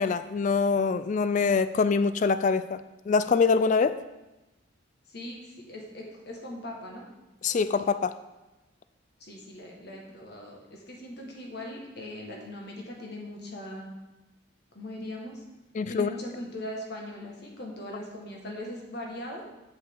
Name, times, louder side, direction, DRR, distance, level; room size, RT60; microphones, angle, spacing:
voice 1, 0.0-4.0 7.4-8.1 15.8-16.1, left 5 dB, 40° left, 13 dB, 0.3 m, -24 dB
voice 2, 5.1-7.0 9.2-14.0 14.7-15.4 15.9-19.4, left 1 dB, 55° left, -1 dB, 1.7 m, -40 dB
7.8 x 7.5 x 3.8 m, 1.0 s
head